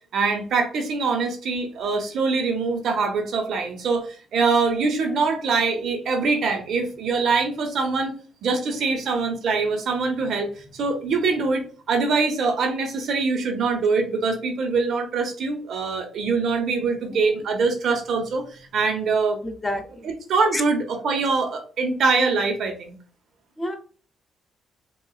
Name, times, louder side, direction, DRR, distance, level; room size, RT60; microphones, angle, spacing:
voice 1, 0.1-8.1 8.4-19.4 20.0-22.9, right 4 dB, 65° right, 5 dB, 0.8 m, -23 dB
voice 2, 19.4-19.8 20.5-20.6 23.6-23.8, left 1 dB, 15° left, 6 dB, 0.6 m, -27 dB
3.7 x 2.3 x 2.3 m, 0.40 s
cardioid pair, 90°, 0 cm